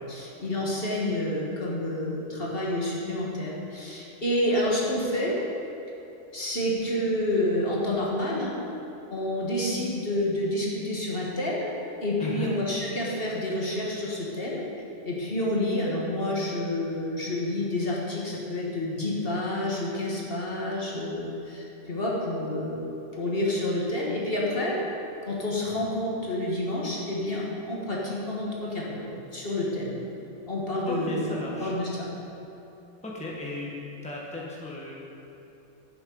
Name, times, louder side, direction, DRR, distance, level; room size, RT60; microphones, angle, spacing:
voice 1, 0.1-5.3 6.3-8.6 9.1-11.7 12.0-14.6 15.0-24.7 25.3-30.0 30.5-32.1, left 1 dB, 45° left, -4 dB, 1.8 m, -29 dB
voice 2, 12.2-12.5 30.9-31.7 33.0-33.7 34.0-34.9, left 2 dB, 5° left, -4 dB, 1.3 m, -35 dB
11.0 x 7.9 x 5.4 m, 3.0 s
omnidirectional pair, 1.4 m